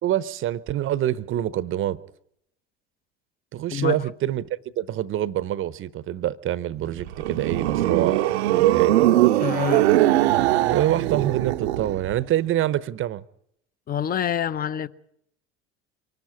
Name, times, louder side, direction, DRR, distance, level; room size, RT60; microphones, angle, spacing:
voice 1, 0.0-2.0 3.5-4.5 4.8-9.1 10.6-13.2, right 12 dB, 35° right, 0.8 m, -26 dB
sound 1, 6.8-12.2, right 15 dB, 75° right, 0.8 m, -21 dB
voice 2, 9.4-9.9 13.9-14.9, left 10 dB, 25° left, 0.7 m, -26 dB
24.0 x 12.0 x 9.7 m
hypercardioid pair, 75°, 34 cm